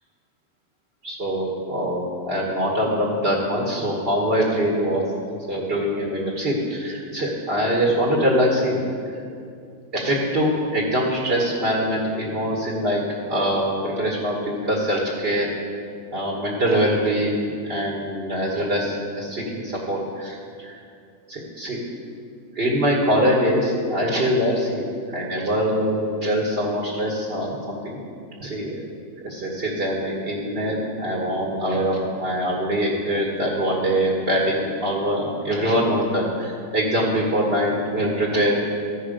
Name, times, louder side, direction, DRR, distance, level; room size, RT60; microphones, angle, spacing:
voice 1, 1.0-5.0 5.5-8.8 9.9-13.0 13.3-15.4 16.1-20.7 21.3-21.8 22.5-28.0 28.4-28.8 29.2-38.6, equal, 45° right, -2 dB, 1.5 m, -23 dB
14.5 x 5.4 x 5.0 m, 2.4 s
omnidirectional pair, 1.5 m